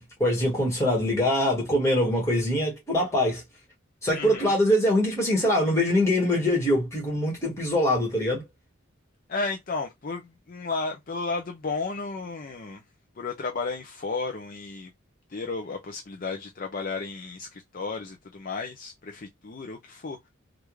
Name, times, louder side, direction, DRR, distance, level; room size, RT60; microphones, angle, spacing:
voice 1, 0.0-3.4 4.0-8.4, left 1 dB, 15° left, 1.6 m, -23 dB
voice 2, 4.1-4.6 9.3-12.8 13.2-14.9 15.3-20.3, left 4 dB, 40° left, 0.5 m, -33 dB
3.4 x 2.4 x 3.1 m
head